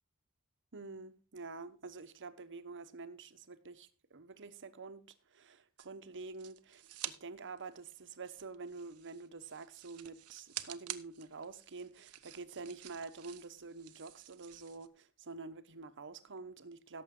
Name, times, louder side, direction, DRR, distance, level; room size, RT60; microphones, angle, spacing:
voice 1, 0.7-5.0 5.3-17.0, right 4 dB, 55° right, 1.0 m, -48 dB
sound 1, 5.8-7.2 7.5-14.9, right 14 dB, 90° right, 0.9 m, -49 dB
17.0 x 7.1 x 3.8 m
head